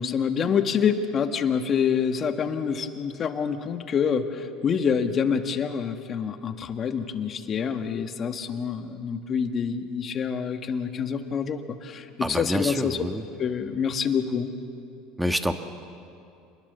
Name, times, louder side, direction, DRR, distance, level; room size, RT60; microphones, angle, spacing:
voice 1, 0.0-13.0 13.4-14.5, left 7 dB, 40° left, 7 dB, 1.8 m, -26 dB
voice 2, 12.2-13.2 15.2-15.5, equal, 5° right, 7 dB, 1.5 m, -27 dB
28.5 x 21.5 x 7.0 m, 2.6 s
supercardioid pair, 100°, 0 cm